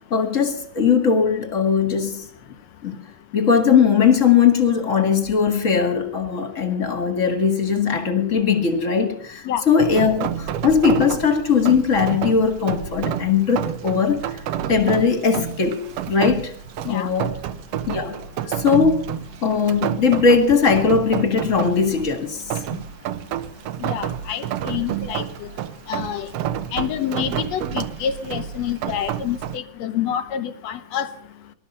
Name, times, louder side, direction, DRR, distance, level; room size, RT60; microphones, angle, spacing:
voice 1, 0.1-2.3 2.8-3.0 3.3-14.4 14.7-16.5 16.9-17.3 17.9-18.2 18.5-19.0 19.4-22.6, left 6 dB, 30° left, 1.7 m, -19 dB
Rain, 9.8-29.6, right 10 dB, 70° right, 1.5 m, -29 dB
voice 2, 23.8-25.5 25.9-26.3 26.7-31.1, left 9 dB, 70° left, 1.8 m, -27 dB
20.0 x 12.5 x 5.5 m
omnidirectional pair, 3.6 m